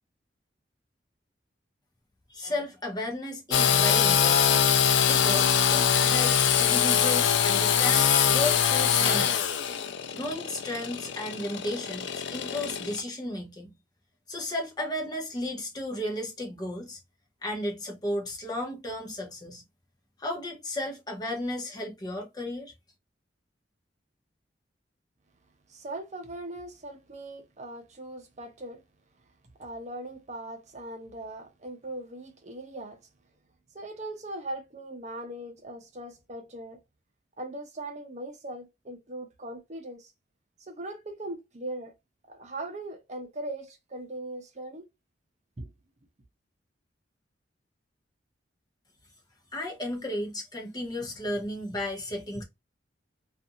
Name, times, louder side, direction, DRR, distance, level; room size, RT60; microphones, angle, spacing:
voice 1, 2.3-4.6 5.1-9.5 10.1-13.7 14.3-17.0 17.4-19.6 20.2-22.7 49.5-52.4, left 1 dB, 20° left, 0.8 m, -34 dB
Engine / Sawing, 3.5-13.0, left 8 dB, 80° left, 0.4 m, -23 dB
voice 2, 25.7-28.8 29.6-33.0 33.7-36.8 37.4-40.1 40.7-41.9 42.3-44.8 45.6-45.7, right 1 dB, 40° right, 0.7 m, -39 dB
2.6 x 2.4 x 2.6 m
head